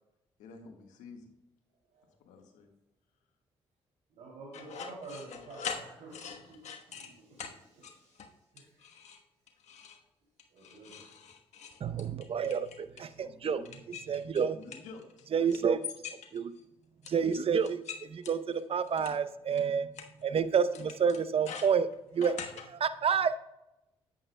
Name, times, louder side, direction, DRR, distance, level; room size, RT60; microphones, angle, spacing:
voice 1, 0.4-1.3 2.2-2.7 13.1-13.7 14.4-15.3, left 4 dB, 85° left, 3 dB, 1.5 m, -50 dB
voice 2, 4.1-8.9 10.5-11.1, right 2 dB, 75° right, -5 dB, 2.9 m, -50 dB
sound 1, 4.5-7.1 7.4-7.5 7.8-8.3 8.6-9.2 9.5-10.0 10.4-13.1 13.7-15.2 15.5-16.6 17.0-19.1 19.6-19.7 20.0-20.1 20.7-22.7, left 7 dB, 65° left, 1.2 m, -43 dB
voice 3, 11.8-13.6 14.1-14.6 15.3-16.5 17.1-19.9 20.2-21.9 22.1-22.3 22.7-23.4, right 6 dB, 50° right, 12 dB, 0.7 m, -29 dB
11.0 x 8.6 x 2.2 m, 0.91 s
supercardioid pair, 55°, 13 cm